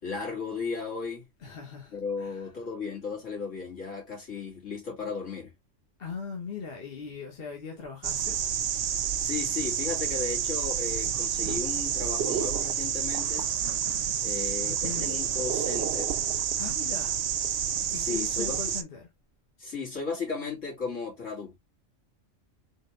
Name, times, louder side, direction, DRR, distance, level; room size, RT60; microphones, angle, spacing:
voice 1, 0.0-1.2 1.9-5.5 9.2-13.5 14.2-16.1 17.9-18.6 19.6-21.6, left 5 dB, 70° left, 3.0 m, -35 dB
voice 2, 1.4-2.5 6.0-8.4 14.6-15.2 16.6-17.2 17.9-19.1, left 5 dB, 50° left, 1.4 m, -40 dB
sound 1, 8.0-18.8, right 8 dB, 60° right, 0.8 m, -29 dB
4.5 x 3.8 x 2.5 m
omnidirectional pair, 1.3 m